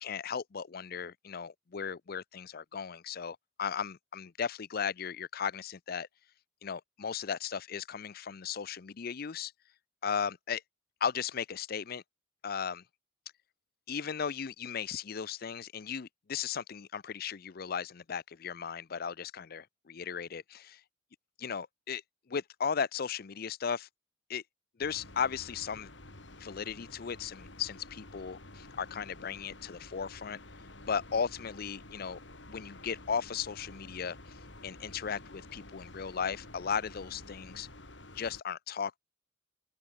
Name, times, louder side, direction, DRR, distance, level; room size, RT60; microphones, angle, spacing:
voice 1, 0.0-6.1 6.6-9.5 10.0-10.6 11.0-12.0 12.4-12.8 13.9-20.7 21.4-22.0 22.3-23.9 24.3-24.4 24.8-25.9 26.4-27.8 28.1-28.4 28.8-30.4 30.9-32.2 32.5-37.7 38.1-39.0, left 6 dB, 50° left, 0.5 m, -36 dB
sound 1, 24.8-38.4, left 2 dB, 70° left, 5.2 m, -50 dB
open air
head